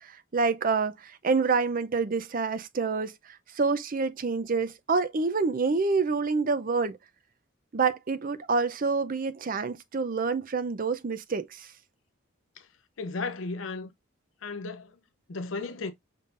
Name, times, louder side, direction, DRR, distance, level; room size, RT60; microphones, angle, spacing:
voice 1, 0.0-3.1 3.6-7.0 7.7-11.7, right 4 dB, 40° right, 0.5 m, -27 dB
voice 2, 13.0-13.9 14.4-15.0 15.3-15.9, left 3 dB, 70° left, 0.6 m, -34 dB
5.7 x 3.7 x 2.5 m
head